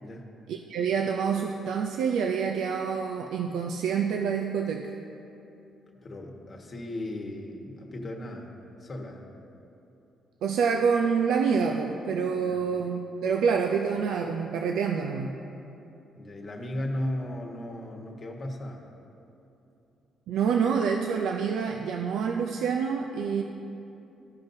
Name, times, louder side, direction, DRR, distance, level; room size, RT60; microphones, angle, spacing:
voice 1, 0.5-4.9 10.4-15.3 20.3-23.4, right 6 dB, 80° right, 2 dB, 0.4 m, -27 dB
voice 2, 6.0-8.5 8.8-9.2 12.4-12.6 16.1-18.8, left 1 dB, 40° left, 1 dB, 1.2 m, -36 dB
14.0 x 5.3 x 2.7 m, 2.9 s
cardioid pair, 90°, 0 cm